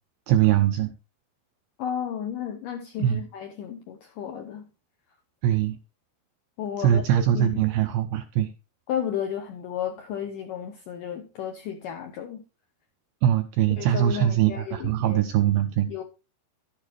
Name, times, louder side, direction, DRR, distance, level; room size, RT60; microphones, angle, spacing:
voice 1, 0.3-0.9 3.0-3.2 5.4-5.8 6.8-8.5 13.2-15.9, right 11 dB, 90° right, 2.1 m, -22 dB
voice 2, 1.8-4.7 6.6-7.6 8.9-12.4 13.8-15.2 15.9-16.0, left 9 dB, 80° left, 1.9 m, -33 dB
12.0 x 8.8 x 3.1 m
omnidirectional pair, 5.0 m